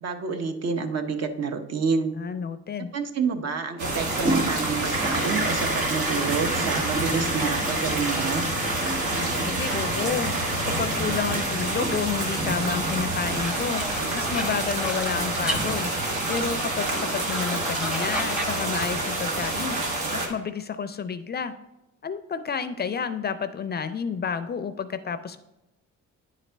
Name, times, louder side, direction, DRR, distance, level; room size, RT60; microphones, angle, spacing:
voice 1, 0.0-2.1 2.9-8.4, right 5 dB, 55° right, 7 dB, 0.8 m, -28 dB
voice 2, 2.1-2.9 9.2-10.4 10.6-15.9 16.3-19.8 20.1-21.5 22.0-25.4, left 6 dB, 35° left, 11 dB, 0.4 m, -30 dB
sound 1, 3.8-20.3, right 2 dB, 85° right, 1.4 m, -28 dB
Toilet flush, 4.1-13.3, right 2 dB, 25° right, 1.6 m, -31 dB
sound 2, 13.3-18.7, equal, 5° right, 0.7 m, -34 dB
9.5 x 4.1 x 3.3 m, 0.94 s
cardioid pair, 90°, 30 cm